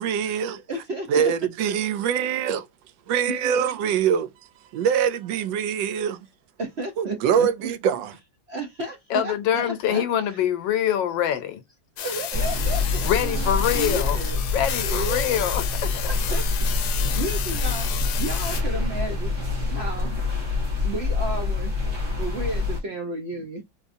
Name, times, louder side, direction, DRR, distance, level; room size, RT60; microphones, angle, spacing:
voice 1, 0.0-0.6 1.1-2.7 3.1-4.3 4.7-6.2 7.0-8.1, right 8 dB, 80° right, 1.2 m, -23 dB
voice 2, 0.7-1.3 3.3-3.5 6.6-7.5 8.5-10.4 12.0-13.1 13.7-14.4 14.8-15.4 16.1-17.9 18.2-19.4 19.7-20.2 20.8-21.8 22.2-23.6, right 2 dB, 60° right, 0.7 m, -33 dB
voice 3, 9.1-11.6 13.0-14.2 14.5-15.6 15.9-16.1, left 10 dB, 85° left, 1.4 m, -24 dB
sound 1, 12.0-18.6, left 9 dB, 70° left, 1.1 m, -31 dB
sound 2, 12.3-22.8, left 3 dB, 45° right, 1.7 m, -26 dB
4.1 x 3.0 x 2.6 m
omnidirectional pair, 2.0 m